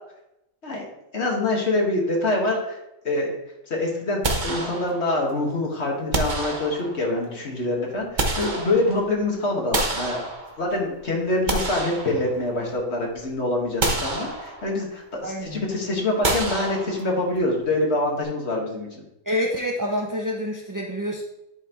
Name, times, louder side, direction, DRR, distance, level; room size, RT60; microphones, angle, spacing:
voice 1, 0.6-2.8 3.0-3.3 3.7-10.3 10.6-19.0, left 2 dB, 55° left, -1 dB, 2.1 m, -25 dB
sound 1, 4.2-5.3 6.1-7.2 7.8-9.2 9.7-10.8 11.3-12.7 13.1-13.3 13.8-14.9 16.2-17.4, right 2 dB, 40° right, 1.2 m, -28 dB
voice 2, 15.2-15.6 19.3-21.2, equal, 25° right, 0 dB, 0.5 m, -27 dB
10.5 x 5.8 x 3.1 m, 0.86 s
omnidirectional pair, 1.4 m